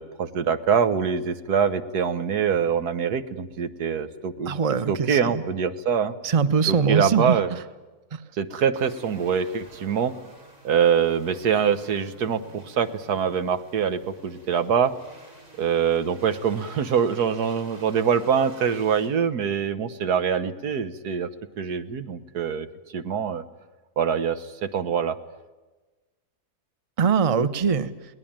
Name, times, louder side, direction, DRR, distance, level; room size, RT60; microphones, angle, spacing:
voice 1, 0.0-4.6 4.9-6.1 6.7-7.5 8.4-10.1 10.6-14.9 15.6-21.3 21.6-22.7 22.9-23.4 24.0-25.2, right 7 dB, 85° right, 10 dB, 1.7 m, -24 dB
voice 2, 4.5-5.4 6.2-7.4 8.1-8.2 27.0-27.9, right 6 dB, 30° right, 13 dB, 0.8 m, -22 dB
sound 1, 8.7-19.1, right 1 dB, 50° right, 6.1 m, -50 dB
22.0 x 19.0 x 8.9 m, 1.2 s
omnidirectional pair, 1.6 m